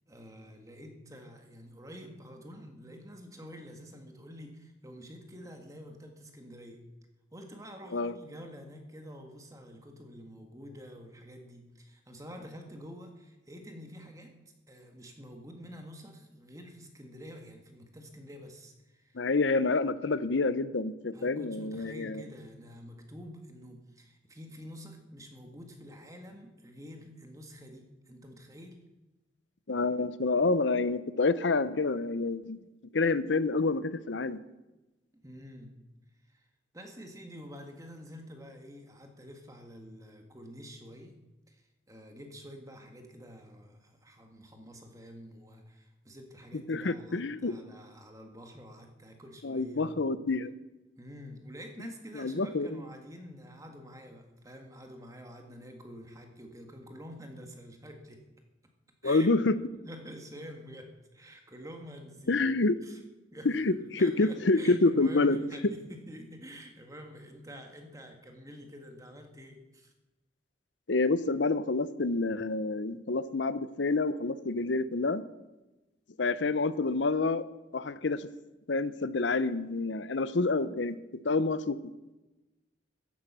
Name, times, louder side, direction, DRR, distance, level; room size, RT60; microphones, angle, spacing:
voice 1, 0.1-6.8 7.3-14.3 14.7-19.2 21.1-28.8 35.1-35.7 36.3-36.5 36.7-41.2 41.5-50.1 51.0-58.2 59.0-59.3 59.8-62.4 62.8-63.0 63.3-69.9, equal, 20° right, 4 dB, 1.8 m, -48 dB
voice 2, 19.1-22.2 29.7-34.4 46.7-47.5 49.4-50.5 52.1-52.8 59.0-59.5 62.3-62.8 63.4-65.4 70.9-75.2 76.2-77.4 77.7-78.3 78.7-81.0 81.2-81.8, left 3 dB, 75° left, 15 dB, 0.8 m, -28 dB
14.5 x 11.0 x 6.1 m, 1.1 s
head